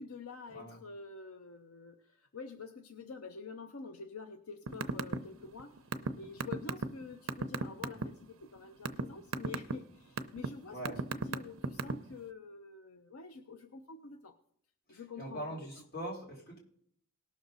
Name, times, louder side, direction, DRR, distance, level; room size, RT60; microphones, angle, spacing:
voice 1, 0.0-5.8 6.2-14.3 14.9-15.6, left 4 dB, 85° left, 8 dB, 0.7 m, -47 dB
voice 2, 0.5-0.8 7.9-8.0 10.7-11.0 14.9-16.6, equal, 45° left, -2 dB, 3.8 m, -42 dB
sound 1, 4.7-5.2 5.4-8.0 8.6-9.0 9.3-9.7 10.2-10.5 10.8-12.1, right 4 dB, 70° right, 0.6 m, -33 dB
18.5 x 6.4 x 4.0 m, 0.66 s
head